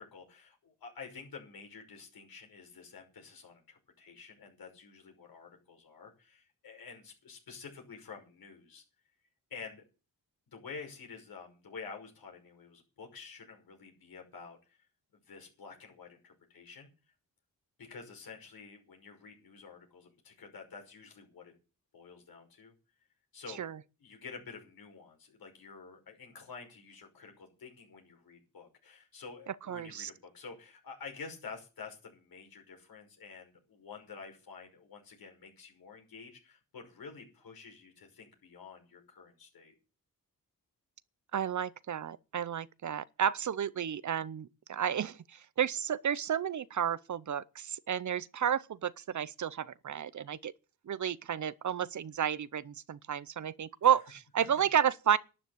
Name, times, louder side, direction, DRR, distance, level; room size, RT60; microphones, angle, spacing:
voice 1, 0.0-8.8 9.5-9.8 10.5-14.9 15.3-16.9 17.8-21.5 21.9-22.7 23.3-23.7 24.0-39.7 53.8-54.0, left 5 dB, 80° left, 5.8 m, -49 dB
voice 2, 29.5-30.1 41.3-50.5 50.9-55.2, right 9 dB, 55° right, 0.7 m, -32 dB
12.0 x 10.0 x 7.9 m
cardioid pair, 85°, 36 cm